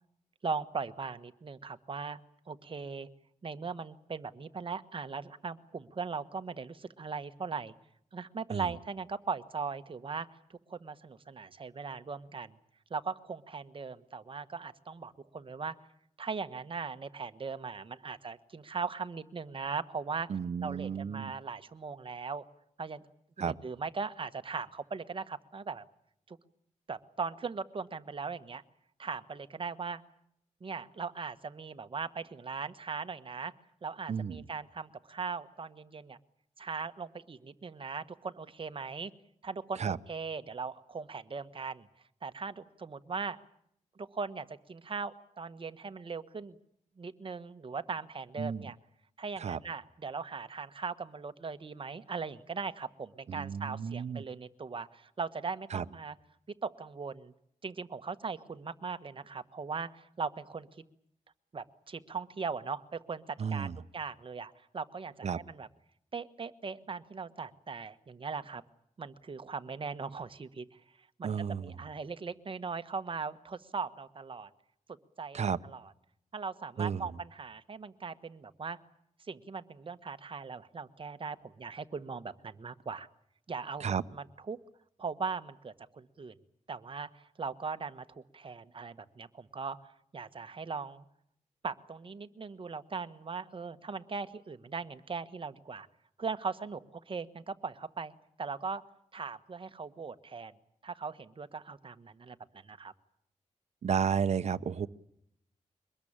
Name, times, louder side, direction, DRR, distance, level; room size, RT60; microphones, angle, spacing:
voice 1, 0.4-2.2 2.5-3.1 3.4-7.7 8.1-12.6 12.9-15.7 16.2-20.3 20.6-22.4 22.8-23.0 23.4-25.8 26.3-26.4 26.9-28.6 29.0-30.0 30.6-33.5 33.8-36.2 36.6-39.1 39.4-41.9 42.2-43.4 44.0-46.6 47.0-48.8 49.2-56.1 56.6-57.3 57.6-60.7 61.5-65.7 66.1-68.6 69.0-70.8 71.2-74.5 75.2-75.8 76.3-78.8 79.3-83.1 83.5-84.6 85.0-86.3 86.7-91.0 91.6-95.9 96.2-98.1 98.4-98.8 99.1-100.5 100.8-102.4 102.6-102.9, right 5 dB, 40° right, 11 dB, 1.3 m, -39 dB
voice 2, 20.3-21.3 23.4-23.5 34.1-34.4 39.8-40.0 48.4-48.7 49.4-49.6 53.3-54.2 55.7-55.8 63.4-63.8 65.2-65.4 71.2-71.7 75.3-75.6 76.8-77.2 83.8-84.0 103.8-104.9, right 7 dB, 60° right, 10 dB, 0.9 m, -32 dB
24.0 x 20.5 x 8.8 m, 0.72 s
wide cardioid pair, 110°, 13 cm